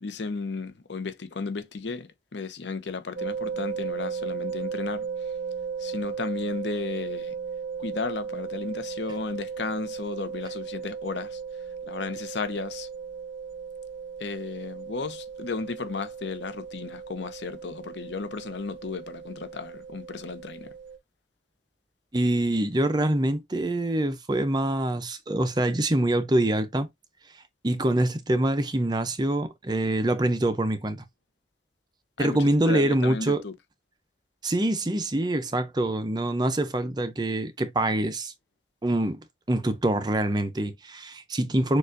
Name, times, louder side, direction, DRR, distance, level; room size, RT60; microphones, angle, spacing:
voice 1, 0.0-5.1 5.8-7.3 7.8-11.4 11.8-12.9 14.2-20.7 32.2-32.4 32.7-33.5, left 4 dB, 75° left, 0.7 m, -34 dB
sound 1, 3.2-21.0, right 6 dB, 85° right, 0.6 m, -36 dB
voice 2, 22.1-26.9 27.6-31.0 32.2-33.4 34.4-38.3 38.8-39.2 39.5-41.8, right 1 dB, 25° right, 0.5 m, -25 dB
6.5 x 2.4 x 2.6 m
head